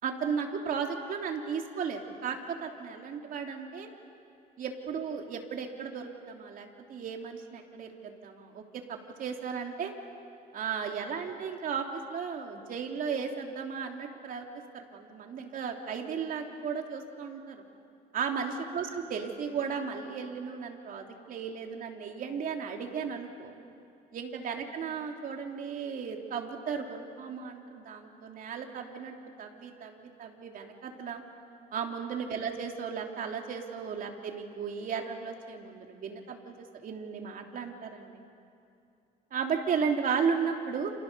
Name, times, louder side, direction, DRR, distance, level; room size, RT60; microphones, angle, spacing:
voice 1, 0.0-3.9 4.6-8.6 8.9-9.9 10.5-14.5 14.7-17.6 18.1-23.5 24.1-31.2 31.7-36.5 36.8-38.2 39.3-40.9, right 6 dB, 55° right, 2 dB, 3.2 m, -35 dB
29.0 x 28.5 x 6.9 m, 2.5 s
cardioid pair, 110°, 17 cm